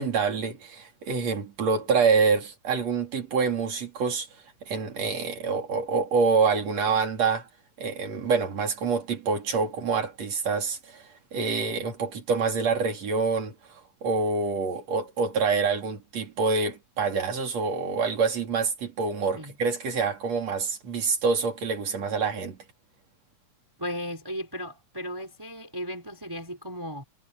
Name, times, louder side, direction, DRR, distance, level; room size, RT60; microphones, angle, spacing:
voice 1, 0.0-4.3 4.7-7.5 7.8-22.6, right 5 dB, 55° right, 4.3 m, -26 dB
voice 2, 23.8-27.0, equal, 5° right, 4.5 m, -35 dB
omnidirectional pair, 3.6 m